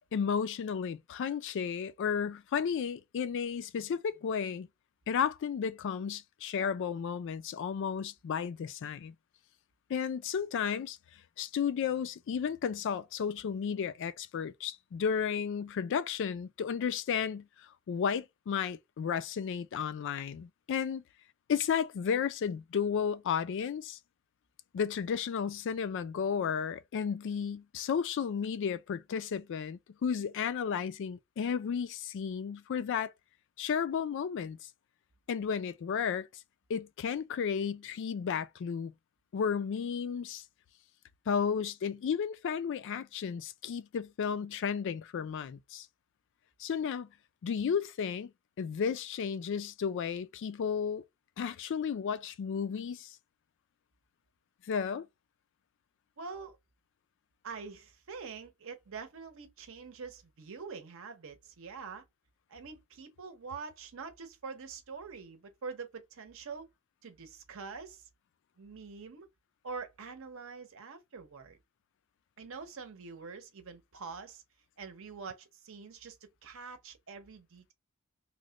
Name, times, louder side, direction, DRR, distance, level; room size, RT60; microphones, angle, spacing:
voice 1, 0.1-4.7 5.1-9.1 9.9-11.0 11.4-21.0 21.5-24.0 24.7-33.1 33.6-34.6 35.3-36.3 36.7-38.9 39.3-40.4 41.3-45.9 46.6-47.1 47.4-48.3 48.6-51.0 51.4-53.2 54.7-55.1, left 7 dB, 60° left, 0.3 m, -33 dB
voice 2, 56.2-56.6 57.4-62.0 62.5-66.7 67.0-68.1 68.6-69.3 69.6-71.6 72.4-74.4 74.8-77.7, right 5 dB, 65° right, 0.7 m, -45 dB
3.1 x 2.1 x 3.7 m
head